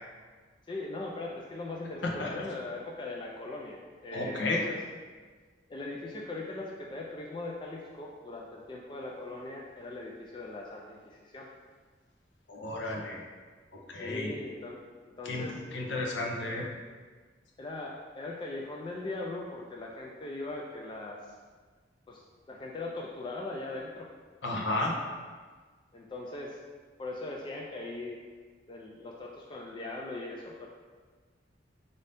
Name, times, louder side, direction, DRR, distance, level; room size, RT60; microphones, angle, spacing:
voice 1, 0.7-4.8 5.7-11.5 13.9-14.8 15.1-15.6 17.6-21.2 22.1-24.1 25.9-26.6 27.0-28.2 28.7-30.7, left 2 dB, 25° left, -2 dB, 0.3 m, -40 dB
voice 2, 4.1-4.7 12.5-13.2 13.9-14.3 15.2-16.6 24.4-25.0, left 2 dB, 65° left, -1 dB, 0.7 m, -32 dB
5.3 x 2.7 x 3.3 m, 1.5 s
head